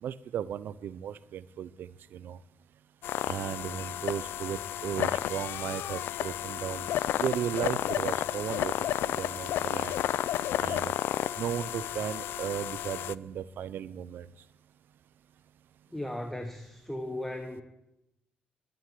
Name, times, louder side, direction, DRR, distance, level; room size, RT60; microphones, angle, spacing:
voice 1, 0.0-2.4 3.3-6.9 7.1-10.0 10.6-10.9 11.4-14.3, right 9 dB, 65° right, 16 dB, 0.6 m, -35 dB
sound 1, 3.0-13.1, left 12 dB, 75° left, 0.4 m, -32 dB
voice 2, 15.9-17.6, left 1 dB, 5° left, 7 dB, 1.2 m, -36 dB
13.0 x 9.5 x 9.3 m, 0.89 s
cardioid pair, 105°, 4 cm